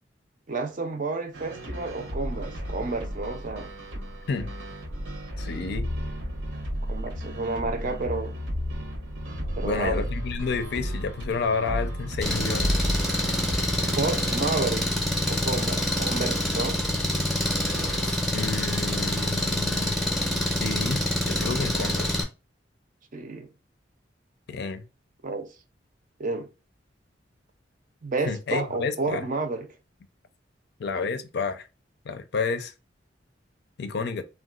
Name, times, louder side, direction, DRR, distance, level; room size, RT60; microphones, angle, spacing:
voice 1, 0.5-3.7 6.9-8.4 9.6-10.1 14.0-15.0 15.3-16.8 23.1-23.5 25.2-25.5 26.2-26.5 28.0-29.7, right 3 dB, 45° right, 0.5 m, -30 dB
sound 1, 1.3-14.4, equal, 75° right, 0.8 m, -33 dB
voice 2, 5.4-5.9 9.6-12.7 18.0-19.9 20.6-22.2 24.5-24.8 28.3-29.3 30.8-31.7 32.1-32.7 33.8-34.2, left 4 dB, 60° left, 0.4 m, -30 dB
Engine, 12.2-22.2, left 1 dB, ahead, 0.6 m, -26 dB
3.6 x 2.2 x 2.3 m
head